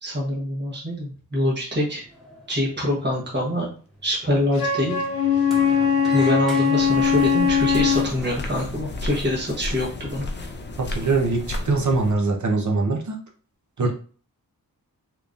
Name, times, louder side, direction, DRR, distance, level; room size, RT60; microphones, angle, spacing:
voice 1, 0.0-2.0 2.5-3.7 4.0-5.0 6.1-10.2 13.8-13.9, left 1 dB, 30° right, -3 dB, 1.1 m, -25 dB
Sliding door, 1.8-8.8, equal, ahead, 1.2 m, -43 dB
Wind instrument woodwind instrument, 4.5-8.1, left 7 dB, 70° left, 0.7 m, -20 dB
sound 1, 6.8-12.1, left 2 dB, 30° left, 0.5 m, -33 dB
voice 2, 10.8-13.2 13.8-13.9, right 3 dB, 55° right, 2 dB, 0.8 m, -22 dB
3.5 x 2.9 x 2.5 m, 0.41 s
wide cardioid pair, 100°, 36 cm